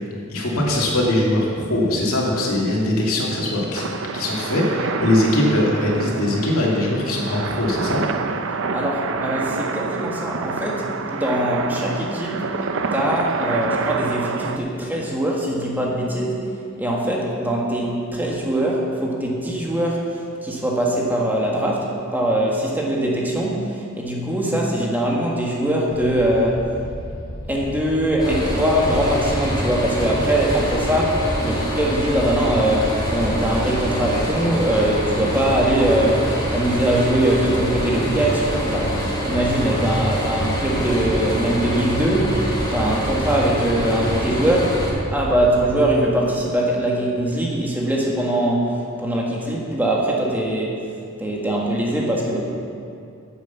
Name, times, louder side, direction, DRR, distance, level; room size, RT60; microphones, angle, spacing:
voice 1, 0.3-3.9 4.1-8.0, left 1 dB, 85° left, -3 dB, 2.5 m, -21 dB
sound 1, 3.7-14.6, right 4 dB, 60° right, 0.6 m, -27 dB
voice 2, 8.7-12.6 12.9-26.7 27.5-44.8 45.1-50.8 51.2-52.4, right 1 dB, 10° right, -3 dB, 1.7 m, -22 dB
sound 2, 25.9-45.8, equal, 65° left, 3.1 m, -33 dB
sound 3, 28.2-44.9, equal, 20° left, 2.7 m, -25 dB
9.7 x 8.2 x 7.1 m, 2.4 s
head